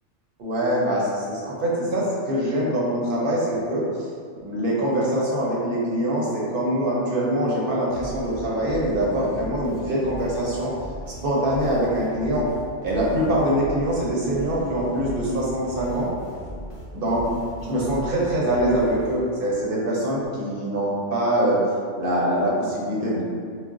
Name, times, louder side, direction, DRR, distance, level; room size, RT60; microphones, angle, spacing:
voice 1, 0.4-4.1 4.4-10.7 11.2-12.5 12.8-16.1 16.9-17.2 17.6-21.6 22.0-23.2, right 1 dB, 55° right, -5 dB, 0.8 m, -24 dB
sound 1, 7.9-19.5, equal, 40° left, 0.5 m, -38 dB
2.3 x 2.2 x 3.7 m, 2.1 s
omnidirectional pair, 1.3 m